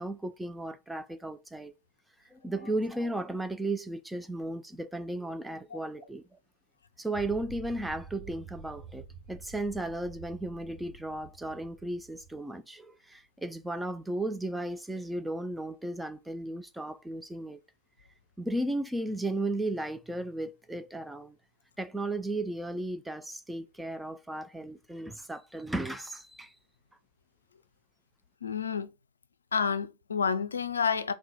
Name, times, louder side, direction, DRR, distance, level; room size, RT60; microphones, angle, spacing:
voice 1, 0.0-1.7 2.3-6.4 7.0-17.6 18.4-21.4 21.8-26.5, right 1 dB, 5° right, 0.3 m, -35 dB
sound 1, 7.1-12.4, right 4 dB, 65° right, 0.9 m, -48 dB
voice 2, 28.4-28.9 29.5-31.1, left 6 dB, 70° left, 0.4 m, -29 dB
3.9 x 2.1 x 4.2 m
figure-of-eight pair, 90°, 0 cm